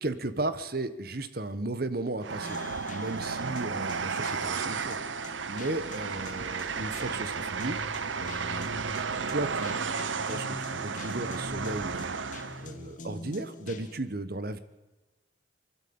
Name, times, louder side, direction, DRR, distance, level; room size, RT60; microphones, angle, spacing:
voice 1, 0.0-2.6 2.9-5.0 5.5-7.8 8.2-8.7 9.3-14.6, right 2 dB, 55° right, 13 dB, 1.3 m, -35 dB
Train, 2.2-12.7, right 5 dB, 90° right, 0.9 m, -33 dB
sound 1, 2.4-14.0, left 2 dB, 45° left, 1.3 m, -45 dB
23.5 x 12.5 x 8.8 m, 1.1 s
head